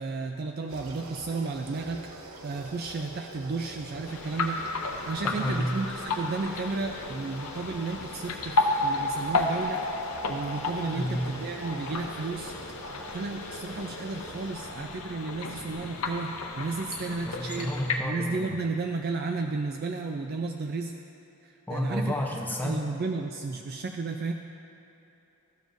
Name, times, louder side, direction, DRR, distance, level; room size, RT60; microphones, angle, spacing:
voice 1, 0.0-9.8 10.3-12.5 12.9-17.7 18.0-20.9 21.4-24.3, right 3 dB, 45° right, 3 dB, 0.3 m, -33 dB
sound 1, 0.7-14.5, right 2 dB, 75° right, 0.7 m, -45 dB
sound 2, 4.1-18.0, left 2 dB, 90° left, 0.6 m, -33 dB
voice 2, 5.2-5.7 10.9-11.2 17.3-18.6 21.7-22.8, equal, 10° left, 0 dB, 0.6 m, -31 dB
sound 3, 9.6-19.3, left 2 dB, 45° left, 1.2 m, -54 dB
13.5 x 7.1 x 2.6 m, 2.9 s
head